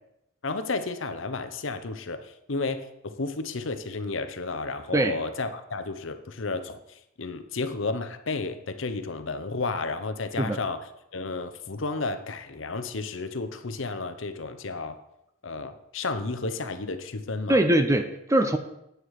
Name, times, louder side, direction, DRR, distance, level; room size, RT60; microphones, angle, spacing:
voice 1, 0.4-15.0 15.4-17.6, left 3 dB, 65° left, 9 dB, 0.9 m, -32 dB
voice 2, 17.5-18.6, right 1 dB, 15° right, 8 dB, 0.6 m, -22 dB
9.3 x 8.1 x 4.8 m, 0.83 s
head